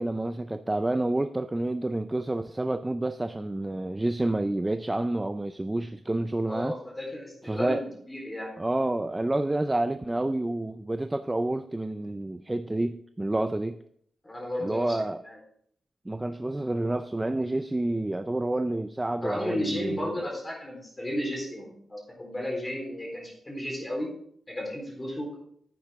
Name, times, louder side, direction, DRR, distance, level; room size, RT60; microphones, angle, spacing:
voice 1, 0.0-6.7 7.5-7.8 8.6-13.8 14.6-15.2 16.1-20.2, right 1 dB, 15° right, 9 dB, 0.4 m, -29 dB
voice 2, 6.5-8.5 14.2-15.0 15.2-15.4 19.2-24.1 24.5-25.4, left 1 dB, 15° left, 0 dB, 3.8 m, -34 dB
10.0 x 8.7 x 3.6 m, 0.66 s
wide cardioid pair, 125°, 0 cm